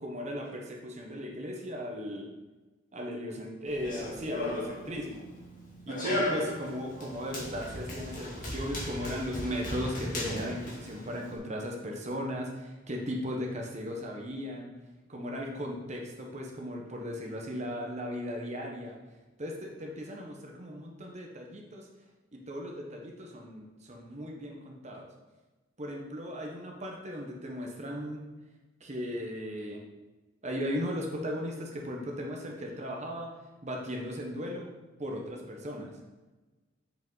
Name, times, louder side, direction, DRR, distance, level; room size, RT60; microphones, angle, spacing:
voice 1, 0.0-2.3 2.9-5.2 5.9-14.7 15.1-19.0 19.4-21.9 22.3-25.1 25.8-28.2 28.8-29.8 30.4-33.3 33.6-34.7 35.0-36.0, equal, 35° right, 0 dB, 1.0 m, -37 dB
Run, 3.7-11.4, equal, 45° left, 2.2 m, -36 dB
7.4 x 5.1 x 3.9 m, 1.2 s
head